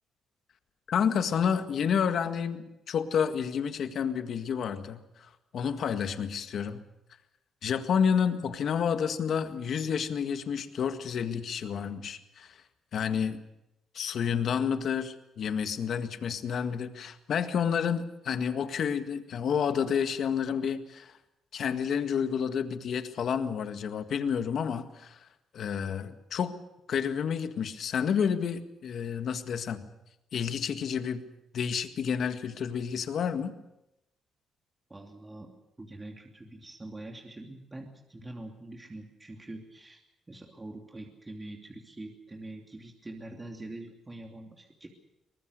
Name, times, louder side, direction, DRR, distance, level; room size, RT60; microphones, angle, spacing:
voice 1, 0.9-5.0 5.5-6.8 7.6-12.5 12.9-13.4 13.9-21.1 21.5-25.2 25.5-26.6 26.9-29.9 30.3-31.2 31.5-33.6, left 7 dB, 65° left, 8 dB, 1.8 m, -30 dB
voice 2, 34.9-35.5 35.8-44.9, right 2 dB, 20° right, 1 dB, 2.9 m, -44 dB
23.5 x 20.0 x 6.7 m, 0.89 s
cardioid pair, 90°, 0 cm